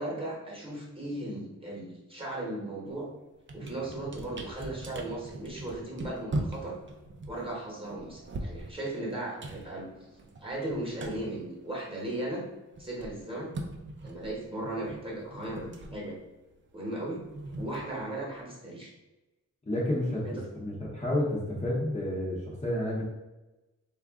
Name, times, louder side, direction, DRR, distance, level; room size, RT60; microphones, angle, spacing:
voice 1, 0.0-3.1 3.5-6.8 7.3-9.9 10.4-12.4 12.8-13.5 14.0-16.2 16.7-17.2 17.6-18.9 20.2-20.4, right 1 dB, 15° right, -4 dB, 1.1 m, -36 dB
sound 1, 2.8-3.0 3.4-12.2 12.5-18.4, right 2 dB, 40° right, 0.4 m, -41 dB
voice 2, 19.7-20.3 20.5-23.0, left 1 dB, 20° left, -6 dB, 0.7 m, -30 dB
3.6 x 2.4 x 3.5 m, 1.0 s
wide cardioid pair, 145°, 32 cm